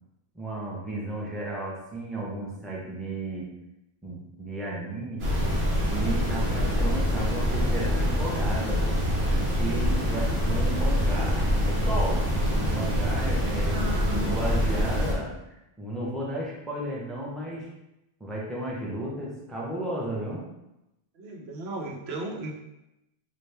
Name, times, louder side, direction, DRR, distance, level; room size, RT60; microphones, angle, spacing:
voice 1, 0.3-3.5 4.0-5.3 5.9-8.8 9.6-13.8 14.1-17.7 18.2-20.4, right 1 dB, ahead, -4 dB, 0.7 m, -34 dB
sound 1, 5.2-15.1, equal, 60° right, 1.0 m, -25 dB
voice 2, 13.3-14.3 21.1-22.6, right 1 dB, 85° right, 1 dB, 0.9 m, -35 dB
4.1 x 2.5 x 3.3 m, 0.90 s
omnidirectional pair, 1.0 m